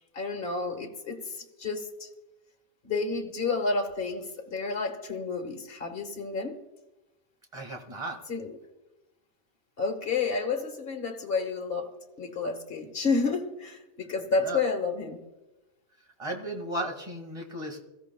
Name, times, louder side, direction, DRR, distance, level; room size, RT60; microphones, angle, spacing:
voice 1, 0.1-2.1 2.8-6.6 8.3-8.6 9.8-11.9 12.2-15.2, left 4 dB, 50° left, 1.6 m, -30 dB
voice 2, 7.5-8.2 14.4-14.6 16.2-17.8, right 1 dB, 25° right, 1.9 m, -35 dB
22.5 x 15.0 x 2.3 m
omnidirectional pair, 1.2 m